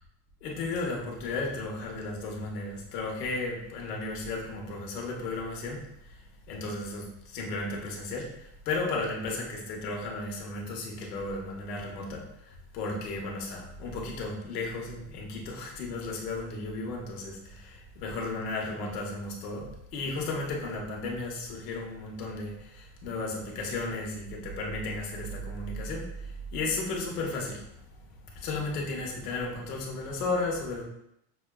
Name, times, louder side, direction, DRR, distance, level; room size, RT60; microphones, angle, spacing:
voice 1, 0.4-6.2 6.5-27.6 28.3-30.8, left 3 dB, 90° left, -1 dB, 1.2 m, -34 dB
6.0 x 2.3 x 2.2 m, 0.77 s
supercardioid pair, 160°, 46 cm